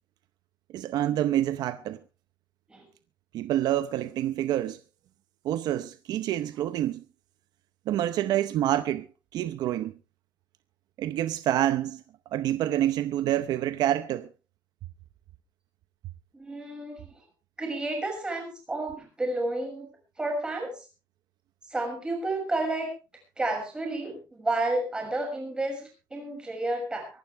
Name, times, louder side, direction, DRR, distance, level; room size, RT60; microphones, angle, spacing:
voice 1, 0.7-2.0 3.3-4.8 5.4-7.0 7.9-9.0 9.3-9.9 11.0-12.0 12.3-14.3, right 12 dB, 65° right, 0.8 m, -27 dB
voice 2, 16.3-17.2 17.6-19.9 20.2-20.7 21.7-22.9 23.4-27.1, right 2 dB, 10° right, 6.4 m, -31 dB
24.0 x 11.5 x 3.4 m
cardioid pair, 170°, 7 cm